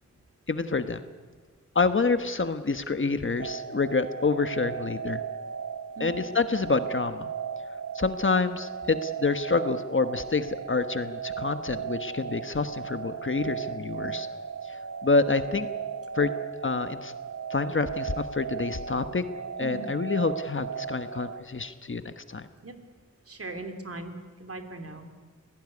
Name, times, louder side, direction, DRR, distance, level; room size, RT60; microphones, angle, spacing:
voice 1, 0.5-1.0 1.7-5.2 6.0-7.3 7.9-14.3 14.7-15.7 16.1-16.3 16.6-17.1 17.5-19.2 19.6-22.5, left 4 dB, 45° left, 10 dB, 1.2 m, -27 dB
sound 1, 3.4-21.4, right 7 dB, 75° right, 2.0 m, -36 dB
voice 2, 6.0-6.3 19.6-19.9 22.6-22.7 23.3-24.1 24.4-25.1, right 2 dB, 50° right, 6 dB, 2.9 m, -39 dB
26.5 x 17.5 x 9.7 m, 1.4 s
wide cardioid pair, 90°, 29 cm